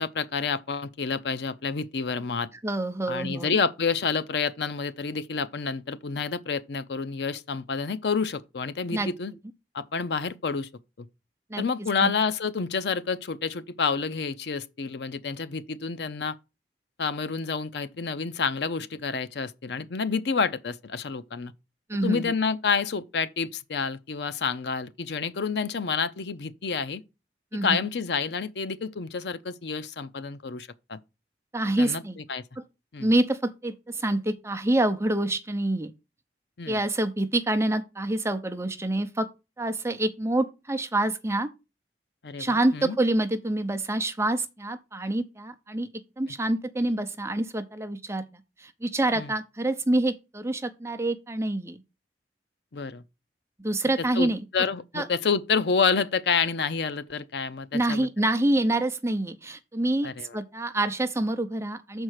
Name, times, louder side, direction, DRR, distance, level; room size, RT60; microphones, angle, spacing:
voice 1, 0.0-2.5 3.1-9.3 9.7-10.7 11.6-16.4 17.0-21.5 22.0-27.0 27.6-31.0 31.8-32.0 32.3-32.4 32.9-33.1 36.6-36.8 42.2-43.0 49.1-49.3 52.7-53.0 54.0-58.1 60.0-60.3, left 5 dB, 70° left, 0.6 m, -29 dB
voice 2, 2.6-3.6 8.9-9.1 11.5-11.7 12.0-12.1 21.9-22.3 27.5-27.9 31.5-32.2 32.6-32.7 33.0-35.9 36.7-39.3 39.6-41.5 42.4-45.9 46.2-48.2 48.6-51.8 53.6-54.5 54.9-55.1 57.7-62.0, right 1 dB, 15° right, 0.7 m, -27 dB
6.5 x 4.5 x 6.4 m
head